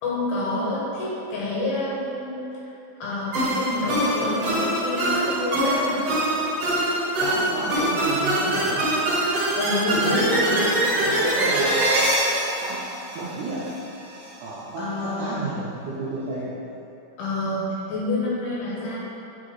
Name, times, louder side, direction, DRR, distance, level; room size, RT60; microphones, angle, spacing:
voice 1, 0.0-2.4 3.0-6.0 9.6-10.8 14.8-15.5 17.2-19.0, left 2 dB, 80° left, -6 dB, 3.2 m, -28 dB
sound 1, 3.3-13.7, right 1 dB, 55° right, 2.0 m, -23 dB
voice 2, 7.2-8.9 10.0-10.7 10.9-12.0 12.6-13.8 14.4-16.6, right 3 dB, 80° right, -8 dB, 1.8 m, -31 dB
8.4 x 4.1 x 3.1 m, 2.9 s
omnidirectional pair, 4.3 m